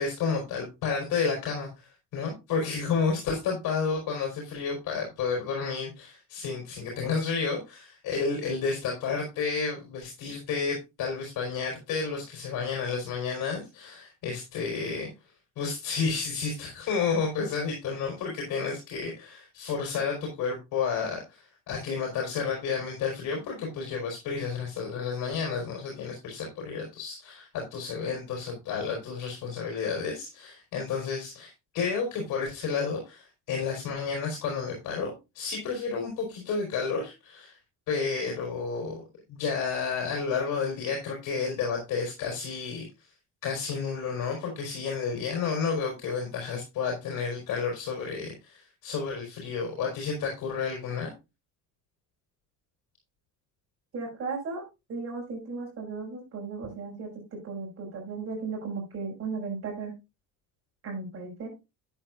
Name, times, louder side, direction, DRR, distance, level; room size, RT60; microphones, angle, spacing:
voice 1, 0.0-15.1 15.6-37.6 37.9-39.0 39.3-42.9 43.4-51.1, left 5 dB, 65° left, 0 dB, 4.2 m, -31 dB
voice 2, 53.9-54.6 54.9-59.9 60.8-61.5, right 4 dB, 40° right, 0 dB, 5.7 m, -36 dB
12.0 x 9.0 x 2.5 m, 0.25 s
cardioid pair, 170°, 33 cm